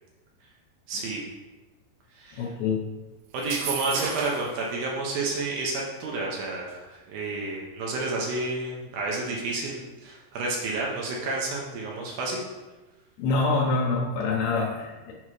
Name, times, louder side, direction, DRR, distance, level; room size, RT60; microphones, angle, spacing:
voice 1, 0.9-1.2 2.2-2.5 3.3-12.4, right 3 dB, 70° right, -2 dB, 2.4 m, -30 dB
voice 2, 2.3-2.9 13.2-15.1, left 3 dB, 75° left, -2 dB, 2.8 m, -26 dB
sound 1, 3.4-4.5, right 6 dB, 85° right, 1.9 m, -32 dB
7.5 x 5.4 x 4.8 m, 1.2 s
omnidirectional pair, 5.0 m